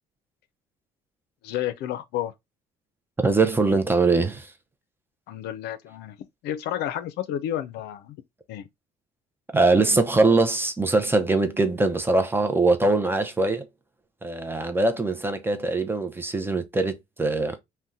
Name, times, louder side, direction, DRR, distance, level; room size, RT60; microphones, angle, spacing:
voice 1, 1.4-2.3 5.3-6.2 6.4-8.2 8.5-8.7, left 11 dB, 80° left, 0.5 m, -31 dB
voice 2, 3.2-4.5 9.5-13.7 14.2-17.6, right 3 dB, 15° right, 0.5 m, -22 dB
2.7 x 2.1 x 3.5 m
cardioid pair, 110°, 17 cm